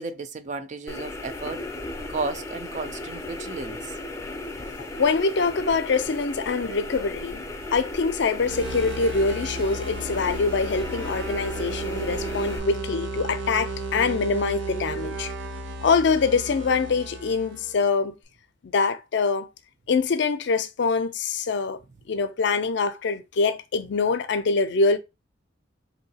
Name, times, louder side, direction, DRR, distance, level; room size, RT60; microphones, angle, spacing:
voice 1, 0.0-1.6 2.1-3.9, right 3 dB, 40° right, 0.4 m, -33 dB
sound 1, 0.9-12.6, left 2 dB, 15° left, 0.5 m, -36 dB
voice 2, 4.8-7.4 7.7-15.3 15.8-18.2 18.7-19.5 19.9-21.8 22.1-25.0, left 4 dB, 65° left, 0.5 m, -24 dB
sound 2, 8.3-17.8, right 2 dB, 80° right, 0.6 m, -34 dB
3.8 x 2.7 x 2.7 m
head